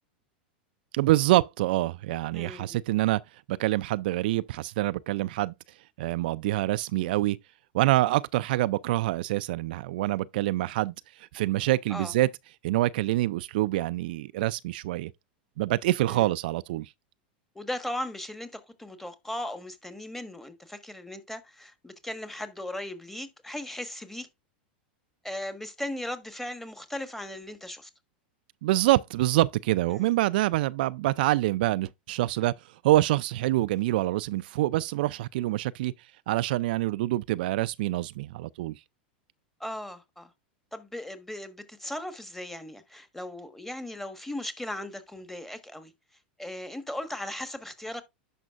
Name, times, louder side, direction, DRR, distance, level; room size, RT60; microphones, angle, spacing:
voice 1, 0.9-3.2 3.5-5.5 6.0-7.4 7.7-12.3 12.6-15.1 15.6-16.9 28.6-32.5 32.8-35.9 36.3-38.8, right 16 dB, 65° right, 0.3 m, -26 dB
voice 2, 2.3-2.8 11.9-12.1 16.1-16.3 17.5-24.3 25.2-27.9 29.9-30.1 39.6-40.3 40.7-45.9 46.4-48.0, left 1 dB, 5° left, 1.3 m, -37 dB
11.0 x 5.4 x 2.4 m
hypercardioid pair, 105°, 5 cm